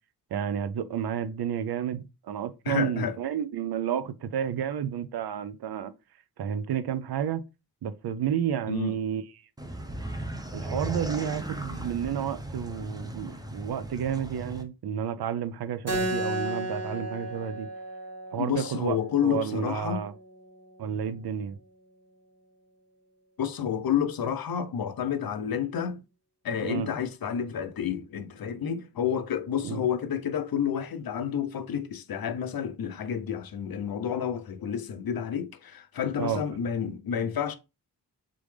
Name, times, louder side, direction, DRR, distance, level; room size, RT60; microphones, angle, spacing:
voice 1, 0.3-5.9 6.4-7.4 7.8-9.2 10.5-17.7 18.3-19.0 19.2-20.1 20.8-21.6 26.6-26.9 29.6-29.9 36.2-36.4, right 8 dB, 70° right, 0.5 m, -31 dB
voice 2, 2.7-3.2 8.7-8.9 18.4-20.0 23.4-26.0 26.4-37.6, left 8 dB, 60° left, 0.6 m, -30 dB
sound 1, 9.6-14.6, right 1 dB, 10° right, 0.6 m, -37 dB
Keyboard (musical), 15.9-21.0, right 1 dB, 40° right, 1.6 m, -35 dB
3.8 x 3.4 x 3.2 m
wide cardioid pair, 95°, 40 cm